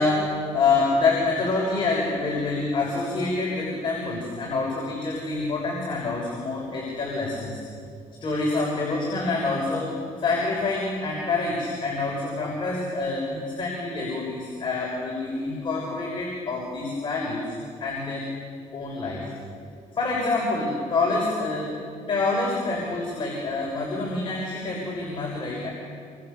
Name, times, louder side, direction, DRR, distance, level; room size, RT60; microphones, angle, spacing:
voice 1, 0.0-7.6 8.2-17.6 17.8-18.3 18.7-19.2 19.9-21.8 22.1-25.7, left 3 dB, 35° left, -2 dB, 6.3 m, -26 dB
28.5 x 25.5 x 7.0 m, 2.3 s
cardioid pair, 110°, 13 cm